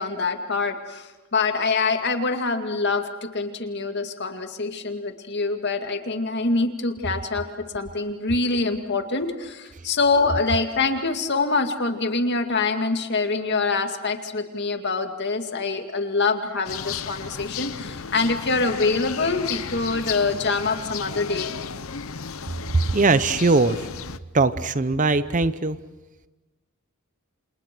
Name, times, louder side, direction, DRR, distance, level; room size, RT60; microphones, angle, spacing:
voice 1, 0.0-21.5, left 3 dB, 50° left, 6 dB, 2.2 m, -25 dB
sound 1, 16.6-24.2, left 6 dB, 65° left, 0.9 m, -34 dB
voice 2, 22.7-23.9 24.3-25.8, right 3 dB, 35° right, 14 dB, 0.8 m, -20 dB
29.0 x 27.5 x 6.1 m, 1.1 s
head